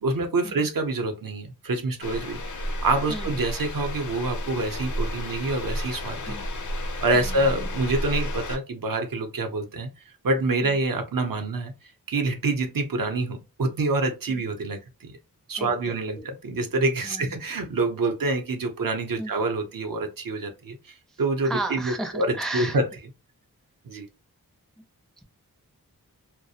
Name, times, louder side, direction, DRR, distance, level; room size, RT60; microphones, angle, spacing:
voice 1, 0.0-6.3 7.0-9.9 10.2-11.7 12.1-15.2 15.5-22.9 23.8-24.1, right 2 dB, 65° right, 0.6 m, -27 dB
sound 1, 2.0-8.6, equal, 55° left, 0.5 m, -32 dB
voice 2, 7.1-7.7 15.6-16.3 17.0-17.4 19.2-19.3 21.1-22.8, right 2 dB, ahead, 0.4 m, -35 dB
2.3 x 2.0 x 2.7 m
wide cardioid pair, 85°, 36 cm